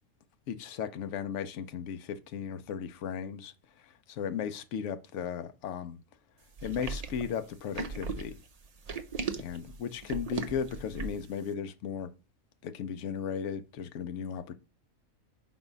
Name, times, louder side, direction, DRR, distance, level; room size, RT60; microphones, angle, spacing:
voice 1, 0.5-6.0 6.6-8.4 9.4-12.1 12.6-14.6, left 7 dB, 70° left, 0.9 m, -36 dB
sound 1, 6.6-11.3, right 4 dB, 40° right, 0.6 m, -37 dB
4.9 x 4.1 x 5.3 m
omnidirectional pair, 1.4 m